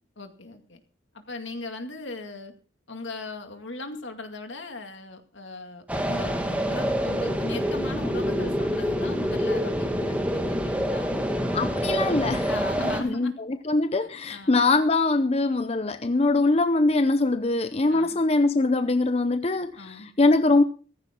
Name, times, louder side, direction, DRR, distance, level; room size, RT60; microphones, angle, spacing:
voice 1, 0.2-0.8 1.3-2.5 2.9-11.2 12.5-13.3 14.3-14.6 17.9-18.2 19.8-20.1, left 2 dB, 80° left, 2.3 m, -38 dB
sound 1, 5.9-13.0, equal, 10° right, 1.9 m, -26 dB
voice 2, 11.5-12.5 13.0-20.6, left 2 dB, 35° left, 0.7 m, -23 dB
15.0 x 15.0 x 3.8 m
head